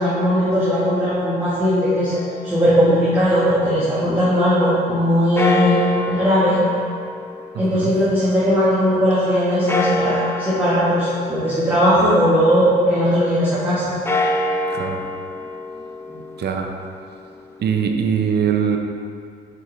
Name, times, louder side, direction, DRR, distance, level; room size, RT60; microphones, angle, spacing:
voice 1, 0.0-2.1 2.4-5.8 6.1-6.6 7.6-13.9, equal, 10° right, -10 dB, 1.4 m, -18 dB
sound 1, 2.1-4.2 5.4-8.7 9.7-12.6 13.9-17.9, left 2 dB, 10° left, 0.5 m, -27 dB
voice 2, 7.5-7.9 14.7-15.0 16.4-16.7 17.6-18.8, right 7 dB, 55° right, 3 dB, 0.7 m, -22 dB
6.0 x 5.3 x 3.2 m, 2.3 s
cardioid pair, 90°, 20 cm